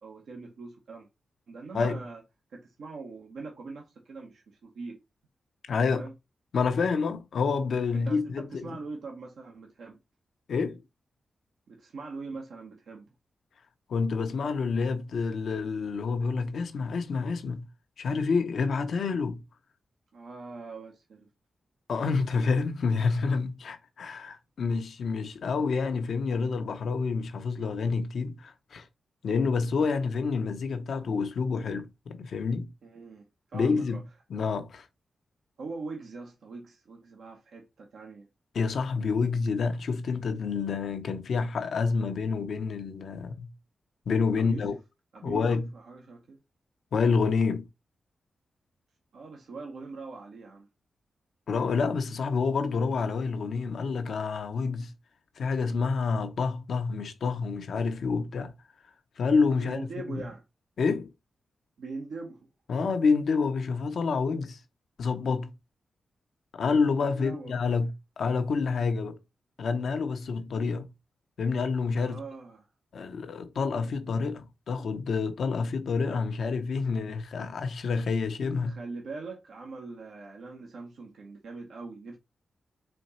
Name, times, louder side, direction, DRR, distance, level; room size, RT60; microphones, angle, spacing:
voice 1, 0.0-1.1 1.5-2.2 2.5-5.0 5.9-6.1 7.9-10.0 11.7-13.1 20.1-21.3 32.8-34.0 35.6-38.3 44.4-44.8 45.1-46.4 49.1-50.7 59.5-60.4 61.8-62.5 67.1-67.6 72.0-72.6 78.6-82.2, right 3 dB, 80° right, 1.0 m, -42 dB
voice 2, 5.7-6.1 6.5-8.8 10.5-10.8 13.9-17.7 18.0-19.4 21.9-28.9 29.2-32.7 33.5-34.0 34.3-34.9 38.5-43.5 44.1-44.8 45.2-45.7 46.9-47.7 51.5-54.9 55.4-58.5 59.2-60.2 60.8-61.1 62.7-64.6 65.0-65.5 66.5-69.2 69.6-70.9 71.4-72.2 72.9-78.8, left 4 dB, 75° left, 0.7 m, -28 dB
4.3 x 2.8 x 4.2 m
cardioid pair, 50°, 0 cm